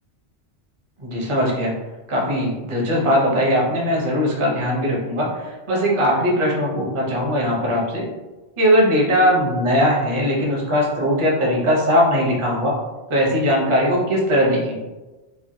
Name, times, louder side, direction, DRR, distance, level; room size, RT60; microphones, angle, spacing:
voice 1, 1.0-1.7 2.1-8.1 8.6-12.8 13.1-14.8, equal, 35° right, -2 dB, 0.6 m, -20 dB
3.2 x 2.1 x 2.7 m, 1.2 s
omnidirectional pair, 1.2 m